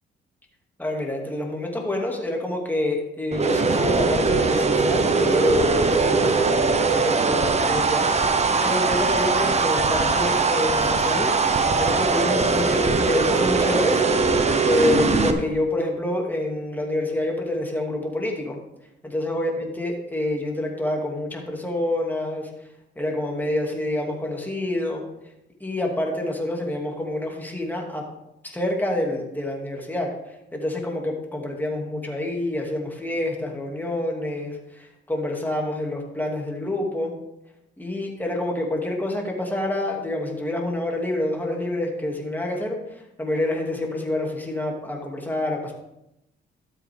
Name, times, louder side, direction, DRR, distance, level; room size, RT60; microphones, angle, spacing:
voice 1, 0.8-14.0 14.6-18.6 19.0-22.5 23.0-25.0 25.6-28.0 28.4-37.1 37.8-45.7, left 1 dB, 10° left, 0 dB, 2.5 m, -27 dB
sound 1, 3.3-15.3, right 4 dB, 35° right, 1.1 m, -21 dB
12.5 x 7.7 x 3.6 m, 0.87 s
cardioid pair, 90°, 20 cm